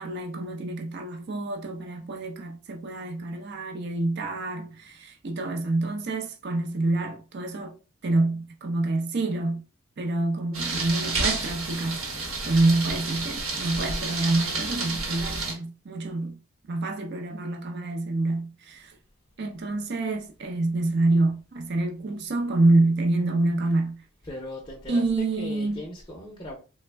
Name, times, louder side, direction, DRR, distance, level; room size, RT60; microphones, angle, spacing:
voice 1, 0.0-7.8 8.0-9.6 10.0-16.4 16.7-18.9 19.4-24.0 24.9-25.8, right 2 dB, 50° right, 0.5 m, -27 dB
sound 1, 10.5-15.5, right 3 dB, 70° right, 1.0 m, -30 dB
voice 2, 24.2-26.6, left 1 dB, 20° left, 0.5 m, -38 dB
3.3 x 2.1 x 3.2 m
head